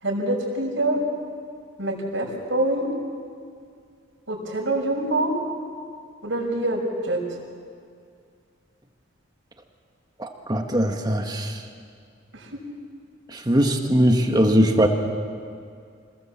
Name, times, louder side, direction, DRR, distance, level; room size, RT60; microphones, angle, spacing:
voice 1, 0.0-1.0 1.8-2.9 4.3-5.3 6.2-7.2 12.3-12.5, right 1 dB, 70° right, -2 dB, 5.8 m, -25 dB
voice 2, 10.2-11.6 13.3-14.9, equal, 20° right, 4 dB, 1.6 m, -20 dB
27.0 x 20.0 x 7.4 m, 2.2 s
head